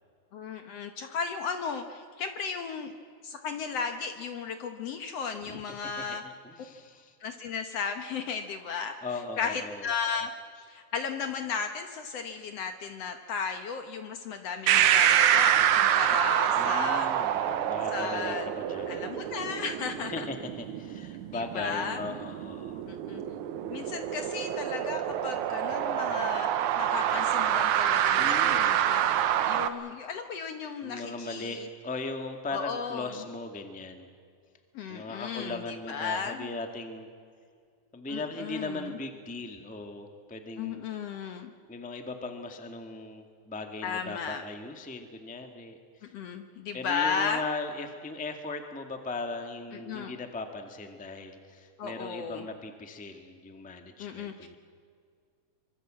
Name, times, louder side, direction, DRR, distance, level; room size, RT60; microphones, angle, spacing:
voice 1, 0.3-2.9 3.2-6.2 7.2-9.0 9.4-10.3 10.6-17.1 17.9-18.5 18.9-20.3 21.3-22.0 22.9-23.2 23.7-26.5 26.8-29.0 29.4-31.7 32.5-33.2 34.7-36.5 38.1-39.0 40.6-41.5 43.8-44.4 46.1-47.4 49.7-50.2 51.8-52.4 54.0-54.6, left 6 dB, 60° left, 7 dB, 1.9 m, -35 dB
voice 2, 6.0-7.1 9.0-9.9 16.5-19.1 20.1-22.9 28.1-28.7 30.8-34.1 34.9-37.1 37.9-40.8 41.7-46.1 46.7-54.6, left 3 dB, 5° left, 5 dB, 1.2 m, -38 dB
sound 1, 14.7-29.7, right 10 dB, 75° right, 2.3 m, -27 dB
25.0 x 24.5 x 7.7 m, 2.1 s
omnidirectional pair, 3.6 m